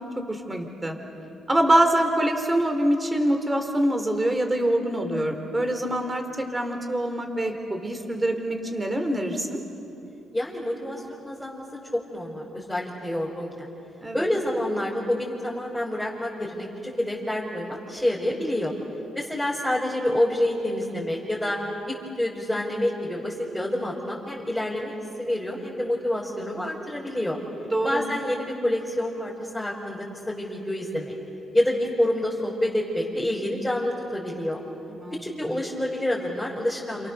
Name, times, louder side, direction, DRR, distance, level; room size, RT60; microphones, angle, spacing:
voice 1, 0.3-1.0 1.5-9.6 14.0-14.3 27.7-28.0 34.9-35.2, right 1 dB, 15° right, 5 dB, 3.8 m, -24 dB
voice 2, 10.3-11.6 11.9-13.7 14.1-18.7 19.1-21.6 21.9-27.4 27.8-31.1 31.5-34.6 35.2-37.1, left 1 dB, 5° left, -6 dB, 5.2 m, -28 dB
29.0 x 28.0 x 6.9 m, 2.9 s
cardioid pair, 90°, 0 cm